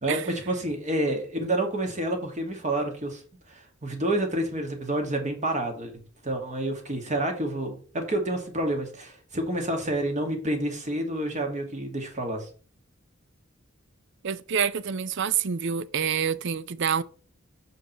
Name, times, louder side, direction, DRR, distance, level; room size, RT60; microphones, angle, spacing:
voice 1, 0.0-3.2 3.5-5.9 6.2-12.5, right 1 dB, 35° right, 1.8 m, -29 dB
voice 2, 14.2-17.0, right 7 dB, 60° right, 0.5 m, -27 dB
5.8 x 5.2 x 6.5 m
head